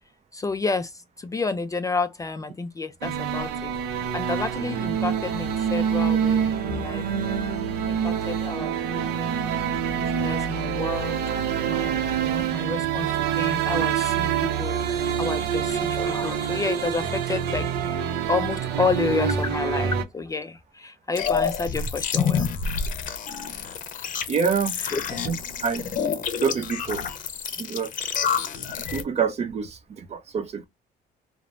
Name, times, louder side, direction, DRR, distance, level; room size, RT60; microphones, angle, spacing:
voice 1, 0.3-7.1 7.9-11.2 11.6-22.5 24.8-25.0, left 4 dB, 20° left, 0.3 m, -30 dB
sound 1, 3.0-20.0, right 8 dB, 85° right, 0.6 m, -26 dB
sound 2, 21.2-29.0, left 6 dB, 50° left, 0.7 m, -28 dB
voice 2, 24.3-24.7 25.2-25.4 25.6-25.9 26.4-27.0 27.6-27.9 28.9-30.7, right 6 dB, 40° right, 0.6 m, -26 dB
3.1 x 2.0 x 2.4 m
cardioid pair, 110°, 17 cm